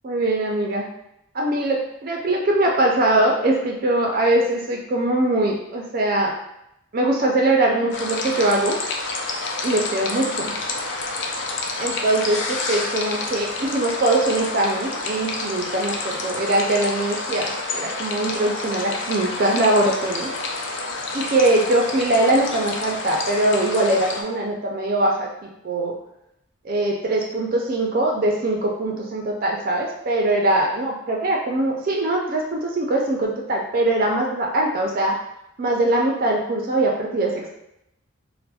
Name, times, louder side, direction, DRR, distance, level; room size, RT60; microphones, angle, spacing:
voice 1, 0.0-0.9 1.3-6.3 6.9-8.8 9.6-10.5 11.8-20.3 21.1-25.9 26.6-35.2 35.6-37.5, right 1 dB, 45° right, 0 dB, 0.4 m, -22 dB
sound 1, 7.9-24.2, left 3 dB, 60° left, 0.4 m, -29 dB
4.0 x 2.1 x 2.3 m, 0.83 s
head